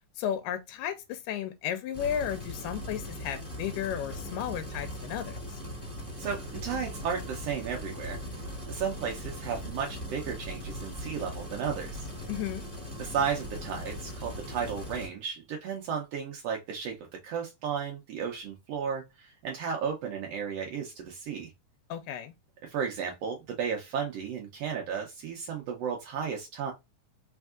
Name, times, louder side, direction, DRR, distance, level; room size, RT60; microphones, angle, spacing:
voice 1, 0.2-5.6 12.3-12.6 21.9-22.3, left 10 dB, 85° left, 2.1 m, -34 dB
sound 1, 1.9-15.1, equal, 10° left, 1.5 m, -39 dB
voice 2, 6.2-8.2 8.7-12.1 13.0-17.0 17.2-21.5 22.6-26.7, right 7 dB, 90° right, 1.3 m, -34 dB
4.5 x 3.5 x 2.3 m
omnidirectional pair, 3.7 m